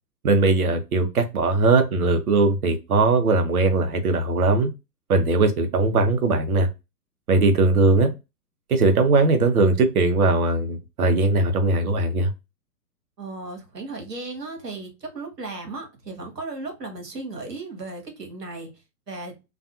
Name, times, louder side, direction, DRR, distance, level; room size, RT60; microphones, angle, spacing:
voice 1, 0.2-4.7 5.1-6.7 7.3-8.1 8.7-12.3, right 3 dB, 65° right, 0.8 m, -20 dB
voice 2, 13.2-18.7 19.1-19.3, right 3 dB, 80° right, 1.1 m, -35 dB
2.5 x 2.3 x 2.5 m
figure-of-eight pair, 120°, 48 cm